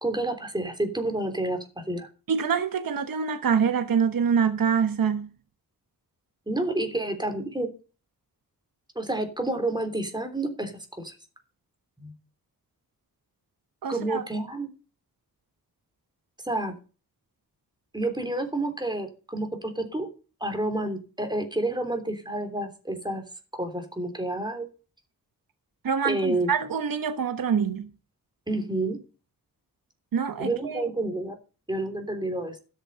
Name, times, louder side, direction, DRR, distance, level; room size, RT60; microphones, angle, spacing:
voice 1, 0.0-2.1 6.5-7.7 8.9-11.1 12.0-12.1 13.9-14.7 16.4-16.7 17.9-20.1 20.4-23.2 23.5-24.7 26.0-26.5 28.5-29.0 30.4-31.3 31.7-32.6, right 2 dB, 10° right, 3.3 m, -29 dB
voice 2, 2.3-5.3 13.8-14.2 25.8-27.9 30.1-30.8, right 6 dB, 75° right, 1.1 m, -25 dB
13.0 x 6.6 x 6.7 m
wide cardioid pair, 115°, 34 cm